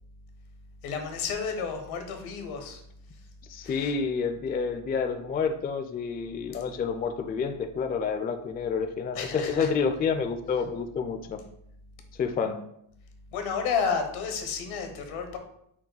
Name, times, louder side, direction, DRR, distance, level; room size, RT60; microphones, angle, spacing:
voice 1, 0.8-2.8 3.6-3.9 9.1-9.7 13.3-15.4, left 5 dB, 85° left, 5 dB, 1.1 m, -31 dB
voice 2, 3.5-11.4 12.2-12.6, left 5 dB, 20° left, 8 dB, 0.3 m, -29 dB
5.9 x 2.2 x 3.9 m, 0.74 s
supercardioid pair, 80°, 48 cm